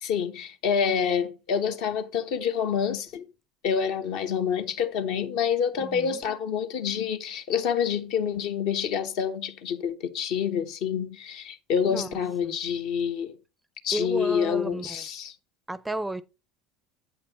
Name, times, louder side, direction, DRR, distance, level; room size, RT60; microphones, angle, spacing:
voice 1, 0.0-3.2 3.6-13.4 13.8-15.3, left 7 dB, 60° left, 0.9 m, -27 dB
voice 2, 5.8-6.2 11.9-12.5 13.9-15.0 15.7-16.2, right 1 dB, 10° right, 0.5 m, -33 dB
8.2 x 5.2 x 4.0 m
hypercardioid pair, 70°, 0 cm